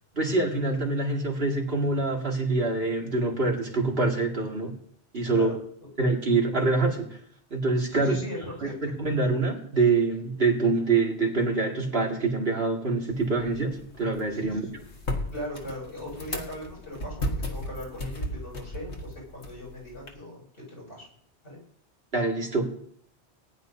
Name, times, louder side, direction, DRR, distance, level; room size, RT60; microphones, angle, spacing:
voice 1, 0.1-4.7 5.1-5.5 6.0-7.2 7.5-8.2 8.8-14.7 22.1-22.8, right 3 dB, 60° right, 0 dB, 2.5 m, -25 dB
voice 2, 7.9-8.7 14.3-14.8 15.3-21.1 21.4-21.6, left 1 dB, 90° left, -4 dB, 6.8 m, -39 dB
sound 1, 13.1-20.1, left 1 dB, 75° left, 1.9 m, -36 dB
20.0 x 10.5 x 2.7 m, 0.62 s
omnidirectional pair, 1.2 m